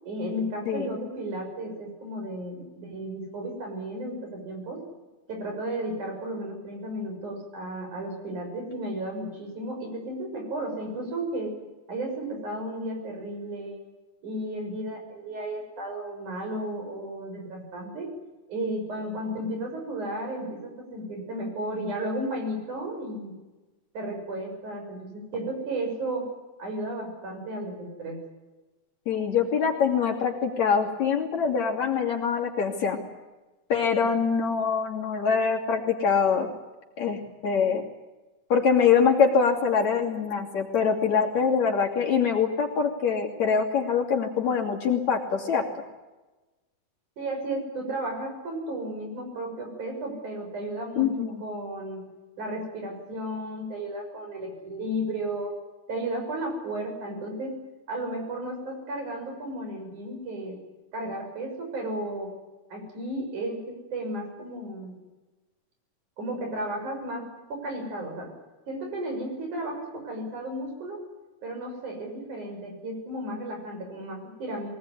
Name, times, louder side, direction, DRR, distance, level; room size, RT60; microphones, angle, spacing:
voice 1, 0.0-4.8 5.3-11.5 11.9-13.8 14.2-18.1 18.5-23.3 23.9-26.3 26.6-28.2 47.2-52.0 52.4-55.5 55.9-57.6 57.9-60.6 60.9-62.3 62.7-64.9 66.2-68.3 68.7-71.0 71.4-74.7, right 1 dB, 75° right, 3 dB, 8.1 m, -34 dB
voice 2, 29.1-33.0 33.7-36.5 37.0-37.8 38.5-45.6 51.0-51.4, left 6 dB, 60° left, -1 dB, 4.1 m, -24 dB
23.5 x 19.0 x 9.8 m, 1.1 s
omnidirectional pair, 3.5 m